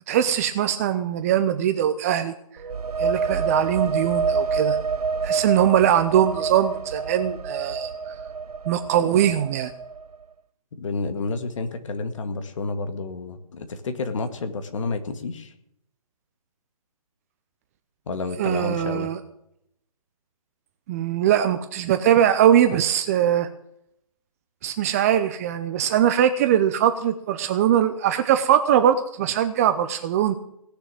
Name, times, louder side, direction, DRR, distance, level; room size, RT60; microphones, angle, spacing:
voice 1, 0.1-2.3 3.0-4.8 5.2-8.2 8.7-9.7 18.4-19.2 20.9-23.5 24.6-30.3, right 10 dB, 25° right, 9 dB, 0.6 m, -21 dB
sound 1, 2.6-10.2, right 5 dB, 85° right, 0.6 m, -27 dB
voice 2, 10.7-15.5 18.1-19.1, left 3 dB, 55° left, 9 dB, 2.0 m, -30 dB
17.5 x 6.8 x 9.0 m, 0.77 s
hypercardioid pair, 150°, 19 cm